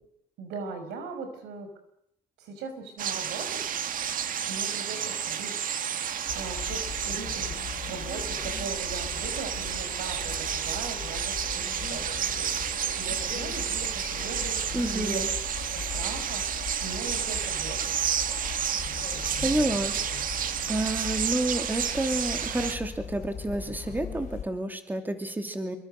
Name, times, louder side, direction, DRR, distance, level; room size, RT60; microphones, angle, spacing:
voice 1, 0.4-1.7 2.4-3.7 4.5-5.6 5.9-15.2 15.6-17.9, right 4 dB, 90° right, 8 dB, 5.2 m, -39 dB
sound 1, 3.0-22.8, right 8 dB, 55° right, 1.7 m, -31 dB
sound 2, 6.3-24.5, left 7 dB, 45° left, 4.8 m, -40 dB
voice 2, 14.7-15.3 18.9-19.1 19.4-20.4 20.7-25.8, right 1 dB, 10° right, 6 dB, 2.9 m, -30 dB
26.5 x 23.5 x 6.7 m, 0.78 s
cardioid pair, 110°, 17 cm